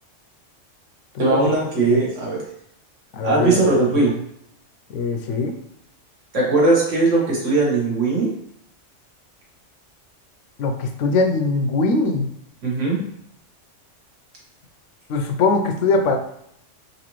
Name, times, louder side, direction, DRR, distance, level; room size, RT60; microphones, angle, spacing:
voice 1, 1.2-2.4 3.2-4.2 6.3-8.3 12.6-13.0, right 3 dB, 75° right, -4 dB, 1.6 m, -19 dB
voice 2, 3.1-3.6 4.9-5.5 10.6-12.3 15.1-16.2, left 3 dB, 80° left, 5 dB, 0.9 m, -21 dB
4.1 x 2.6 x 3.0 m, 0.72 s
omnidirectional pair, 1.3 m